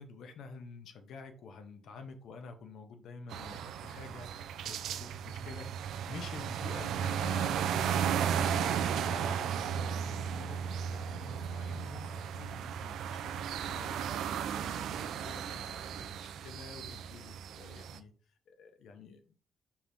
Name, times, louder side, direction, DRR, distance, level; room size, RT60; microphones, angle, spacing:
voice 1, 0.0-18.1 18.5-19.2, left 5 dB, 70° left, 0.7 m, -49 dB
sound 1, 3.3-18.0, right 8 dB, 85° right, 0.3 m, -35 dB
4.6 x 2.6 x 3.4 m
cardioid pair, 135°, 0 cm